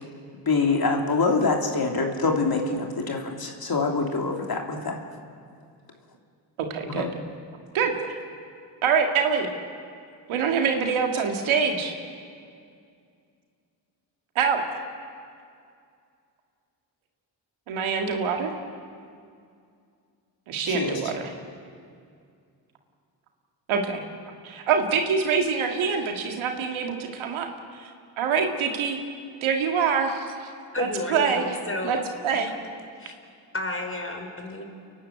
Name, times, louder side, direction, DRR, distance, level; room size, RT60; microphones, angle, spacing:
voice 1, 0.5-5.0 6.9-7.1 20.7-21.0, left 3 dB, 50° left, 2 dB, 3.1 m, -25 dB
voice 2, 6.7-7.1 7.7-7.9 8.8-9.5 10.3-11.9 14.4-14.6 17.7-18.5 20.5-21.2 23.7-24.0 24.4-27.5 27.8-27.9 28.2-29.0 29.4-30.3 30.8-31.6 31.8-32.0 32.2-32.5, right 6 dB, 85° right, 3 dB, 2.2 m, -25 dB
voice 3, 30.7-32.0 32.3-32.5 33.0-33.1 33.5-34.6, left 2 dB, 25° left, 3 dB, 5.0 m, -31 dB
30.0 x 11.5 x 8.4 m, 2.3 s
supercardioid pair, 45°, 47 cm